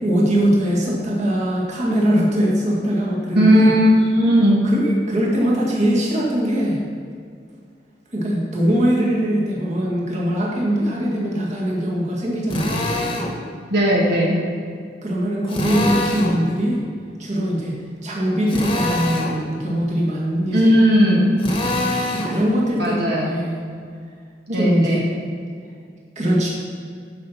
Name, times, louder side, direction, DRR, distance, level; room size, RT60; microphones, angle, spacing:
voice 1, 0.0-3.7 4.7-6.8 8.1-12.8 15.0-16.8 17.2-17.7 18.0-20.6 21.4-21.5 22.1-23.6 24.6-25.0 26.2-26.5, equal, 40° right, -4 dB, 1.9 m, -21 dB
voice 2, 3.3-4.6 13.7-14.4 20.5-21.3 22.8-23.3 24.5-25.1, equal, 65° right, -4 dB, 1.7 m, -16 dB
Drill, 12.5-13.3 15.5-16.4 18.5-19.4 21.4-22.4, left 1 dB, 30° left, 1.2 m, -24 dB
13.0 x 5.6 x 4.3 m, 2.2 s
head